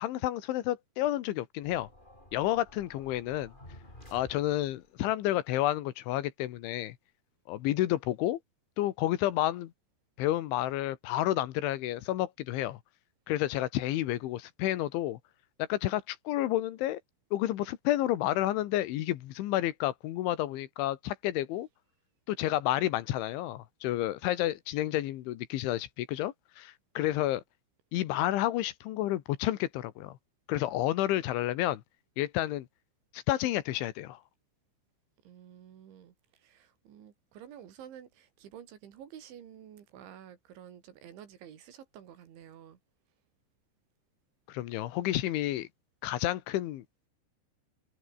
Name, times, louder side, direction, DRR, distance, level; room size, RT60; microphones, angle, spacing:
voice 1, 0.0-1.9 2.3-3.5 4.1-7.0 7.5-8.4 8.8-9.7 10.2-12.8 13.3-15.2 15.6-17.0 17.3-21.7 22.3-27.4 27.9-30.2 30.5-31.8 32.2-32.7 33.1-34.2 44.5-45.7 46.0-46.8, left 14 dB, 85° left, 3.9 m, -30 dB
sound 1, 1.6-5.0, left 1 dB, 10° left, 7.4 m, -53 dB
voice 2, 35.2-42.8, right 9 dB, 80° right, 5.2 m, -50 dB
omnidirectional pair, 5.3 m